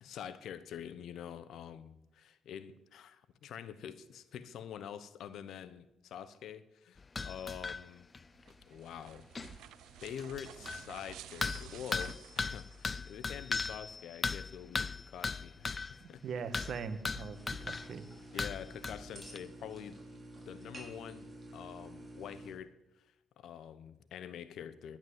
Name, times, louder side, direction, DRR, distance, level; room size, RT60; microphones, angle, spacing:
voice 1, 0.0-8.1 8.7-9.6 10.0-16.2 18.3-20.0 20.5-23.0 23.4-25.0, left 9 dB, 75° left, 14 dB, 0.9 m, -46 dB
sound 1, 7.0-7.8 8.1-8.2 8.5-8.6 9.0-9.1 9.3-9.6 10.2-10.9 11.4-16.0 16.5-17.9 18.4-19.4, left 4 dB, 35° left, 0.4 m, -38 dB
sound 2, 8.3-13.3, right 13 dB, 85° right, 0.4 m, -52 dB
voice 2, 16.0-18.1 18.3-18.4, right 6 dB, 65° right, 10 dB, 1.4 m, -41 dB
sound 3, 17.3-22.5, right 1 dB, 15° right, 5.8 m, -50 dB
11.0 x 10.5 x 7.9 m, 0.93 s
cardioid pair, 75°, 0 cm